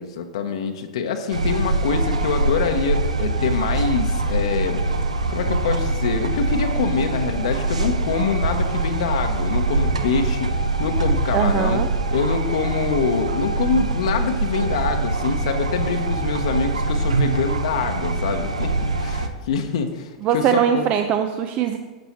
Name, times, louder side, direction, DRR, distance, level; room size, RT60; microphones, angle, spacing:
voice 1, 0.0-4.8 5.3-11.8 12.1-20.9, left 6 dB, 65° left, 5 dB, 0.9 m, -25 dB
sound 1, 1.3-19.3, right 2 dB, 85° right, 0.8 m, -23 dB
voice 2, 11.3-11.9 20.2-21.8, right 8 dB, 40° right, 7 dB, 0.6 m, -21 dB
11.5 x 8.0 x 4.3 m, 1.3 s
figure-of-eight pair, 95°, 3 cm